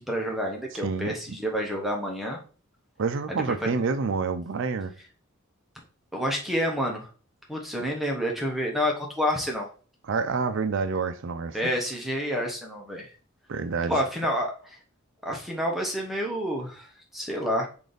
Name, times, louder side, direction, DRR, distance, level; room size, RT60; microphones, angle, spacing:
voice 1, 0.0-2.4 3.3-3.7 6.1-7.1 7.5-9.7 11.5-13.1 13.9-14.8 15.2-17.7, equal, ahead, 0.7 m, -29 dB
voice 2, 0.8-1.4 3.0-4.9 10.1-11.6 13.5-14.0, right 4 dB, 60° right, 0.5 m, -28 dB
5.1 x 2.6 x 3.8 m
head